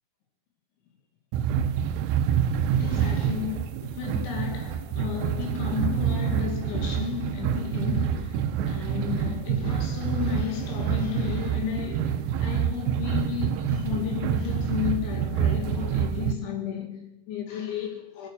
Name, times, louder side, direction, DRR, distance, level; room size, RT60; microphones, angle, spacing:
sound 1, 1.3-16.3, right 8 dB, 80° right, 2.8 m, -27 dB
voice 1, 2.8-18.3, left 9 dB, 75° left, 4.9 m, -33 dB
21.5 x 7.2 x 6.5 m
omnidirectional pair, 5.4 m